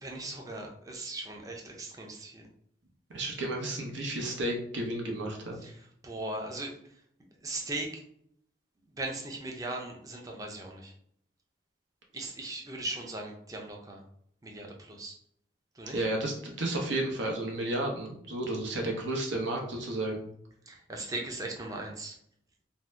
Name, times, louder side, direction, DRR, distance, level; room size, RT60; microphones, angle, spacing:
voice 1, 0.0-2.5 5.6-5.7 6.0-6.7 7.4-7.9 9.0-10.9 12.1-14.0 14.4-15.1 15.8-16.0 20.7-22.1, right 2 dB, 20° right, 1 dB, 0.5 m, -38 dB
voice 2, 3.1-5.6 15.9-20.3, right 1 dB, 85° right, 1 dB, 0.7 m, -32 dB
2.6 x 2.1 x 3.3 m, 0.68 s
head